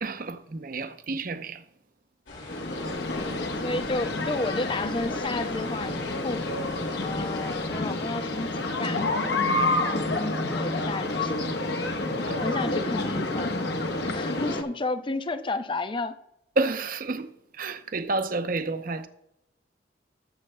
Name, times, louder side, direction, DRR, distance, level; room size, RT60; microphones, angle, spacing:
voice 1, 0.0-1.6 9.4-9.8 12.3-12.4 16.6-17.3 17.6-19.1, right 3 dB, 50° right, 0.7 m, -30 dB
sound 1, 2.3-7.7, left 2 dB, 90° left, 2.4 m, -43 dB
sound 2, 2.5-14.6, left 2 dB, 65° left, 1.1 m, -29 dB
voice 2, 3.1-6.5 7.0-9.1 9.4-11.4 11.8-11.9 12.4-13.6 14.1-16.2, left 2 dB, 25° left, 0.5 m, -32 dB
20.0 x 7.6 x 2.2 m
head